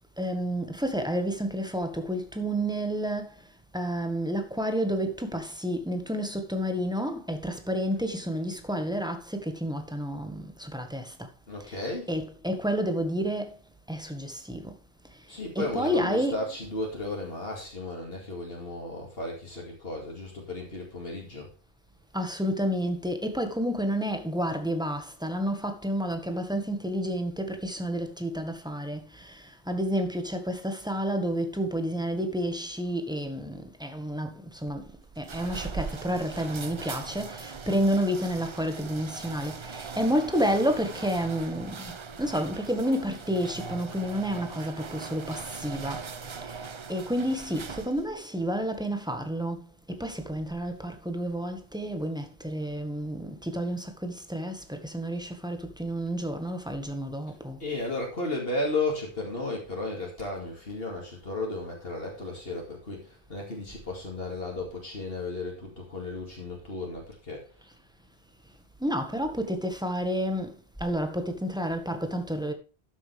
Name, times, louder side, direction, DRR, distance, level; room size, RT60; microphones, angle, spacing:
voice 1, 0.2-3.5 3.7-11.3 11.6-13.6 13.9-14.8 15.1-15.2 15.5-16.5 22.1-34.9 35.2-41.9 42.2-57.6 68.8-72.5, equal, 5° right, 1.5 m, -30 dB
voice 2, 11.5-12.1 15.3-21.5 57.6-67.4, left 2 dB, 55° left, 2.5 m, -34 dB
sound 1, 34.7-48.2, right 5 dB, 40° right, 0.5 m, -40 dB
12.5 x 7.3 x 3.4 m
omnidirectional pair, 1.2 m